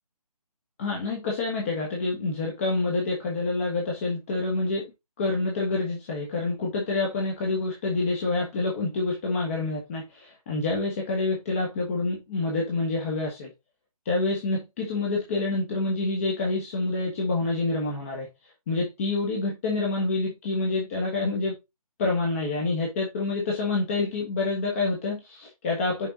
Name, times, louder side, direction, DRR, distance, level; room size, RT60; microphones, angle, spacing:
voice 1, 0.8-4.9 5.2-13.5 14.0-21.6 22.0-26.1, left 3 dB, 20° left, -2 dB, 1.3 m, -27 dB
6.7 x 4.6 x 3.8 m, 0.23 s
figure-of-eight pair, 150°, 20 cm